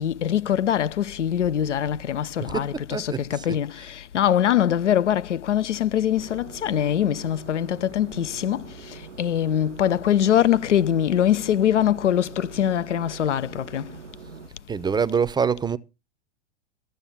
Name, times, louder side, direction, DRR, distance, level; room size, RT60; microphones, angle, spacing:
voice 1, 0.0-8.6 9.2-13.8, left 10 dB, 85° left, 0.8 m, -23 dB
voice 2, 2.4-3.9 14.7-15.8, right 6 dB, 10° right, 0.6 m, -26 dB
sound 1, 6.1-14.5, right 8 dB, 85° right, 0.9 m, -44 dB
14.0 x 7.0 x 7.1 m
hypercardioid pair, 105°, 35 cm